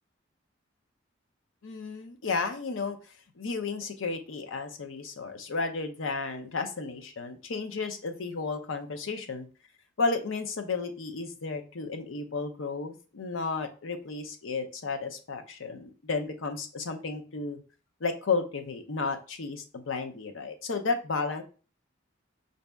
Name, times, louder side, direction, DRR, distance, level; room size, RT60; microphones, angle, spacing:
voice 1, 1.6-3.0 3.4-9.5 10.0-17.6 18.0-21.4, left 4 dB, 85° left, 6 dB, 0.7 m, -33 dB
5.1 x 2.7 x 3.4 m, 0.36 s
head